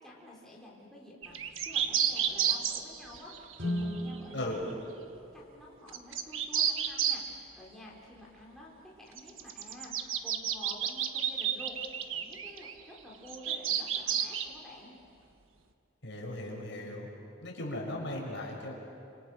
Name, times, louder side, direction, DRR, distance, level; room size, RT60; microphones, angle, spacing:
voice 1, 0.0-4.8 5.1-8.7 9.0-15.0, left 1 dB, ahead, -5 dB, 4.3 m, -50 dB
sound 1, 1.2-4.2 5.9-7.2 9.2-12.7 13.3-14.5, right 8 dB, 85° right, 1.4 m, -31 dB
Guitar, 3.6-6.1, equal, 65° right, 4.8 m, -38 dB
voice 2, 16.0-17.1 17.4-18.7, left 1 dB, 65° left, -1 dB, 5.7 m, -37 dB
28.5 x 27.0 x 6.5 m, 2.6 s
head